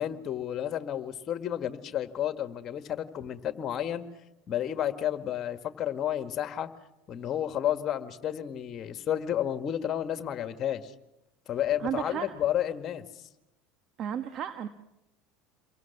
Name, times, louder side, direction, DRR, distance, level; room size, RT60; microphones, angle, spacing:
voice 1, 0.0-4.0 4.5-6.7 7.1-10.9 11.5-13.0, left 10 dB, 45° left, 9 dB, 1.8 m, -31 dB
voice 2, 11.8-12.3 14.0-14.7, right 9 dB, 45° right, 9 dB, 1.3 m, -33 dB
28.5 x 23.0 x 6.1 m, 0.93 s
hypercardioid pair, 75°, 0 cm